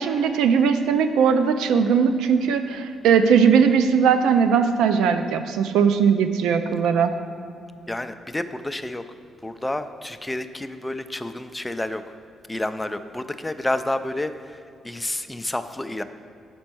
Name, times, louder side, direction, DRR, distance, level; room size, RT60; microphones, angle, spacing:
voice 1, 0.0-7.1, right 6 dB, 90° right, 9 dB, 0.4 m, -19 dB
voice 2, 7.9-9.0 9.4-12.2 12.5-16.0, left 1 dB, 10° left, 10 dB, 0.3 m, -30 dB
5.2 x 4.4 x 6.0 m, 2.5 s
cardioid pair, 90°, 0 cm